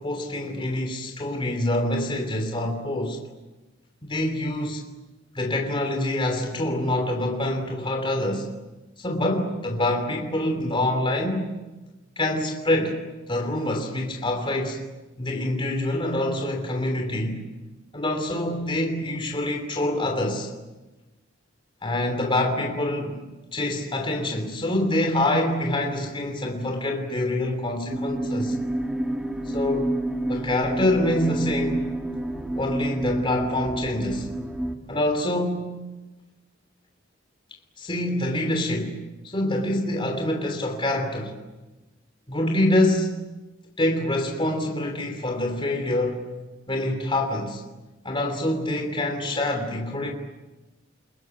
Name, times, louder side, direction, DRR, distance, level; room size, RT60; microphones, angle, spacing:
voice 1, 0.0-3.2 4.0-4.8 5.3-8.5 9.0-11.5 12.2-13.0 13.3-14.8 15.2-17.4 17.9-20.5 21.8-28.5 29.4-29.9 30.3-31.8 32.6-34.3 34.9-35.7 37.8-39.0 39.2-41.4 42.3-43.2 43.8-46.2 46.7-47.6 48.0-50.1, left 1 dB, 25° left, 3.1 m, -26 dB
sound 1, 27.9-34.7, right 1 dB, 5° right, 2.1 m, -29 dB
30.0 x 21.0 x 9.4 m
head